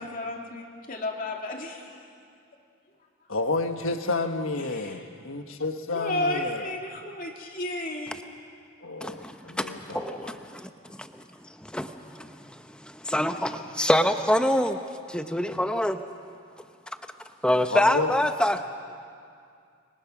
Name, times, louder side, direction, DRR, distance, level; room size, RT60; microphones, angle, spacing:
voice 1, 0.0-1.9 4.7-5.0 5.9-8.3, left 1 dB, 40° left, 2.7 m, -32 dB
voice 2, 3.3-6.7 8.8-10.4 17.7-18.1, left 3 dB, 65° left, 1.5 m, -30 dB
voice 3, 9.0-10.7 11.0-11.2 11.6-14.8 15.1-16.0 17.4-18.6, left 1 dB, 5° left, 0.9 m, -26 dB
25.5 x 23.5 x 6.2 m
head